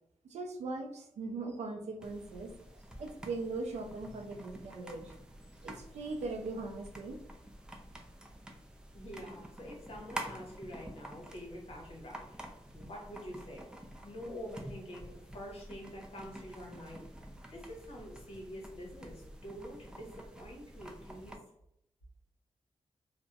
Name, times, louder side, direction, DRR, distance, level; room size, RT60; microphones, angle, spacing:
voice 1, 0.2-2.5 3.0-5.1 5.6-7.2, right 3 dB, 80° right, 5 dB, 0.4 m, -40 dB
sound 1, 2.0-21.4, right 1 dB, 5° right, 0.4 m, -49 dB
voice 2, 8.9-13.7 14.0-17.1 17.5-21.4, equal, 60° left, -2 dB, 0.9 m, -46 dB
2.6 x 2.0 x 2.3 m, 0.78 s
cardioid pair, 65°, 11 cm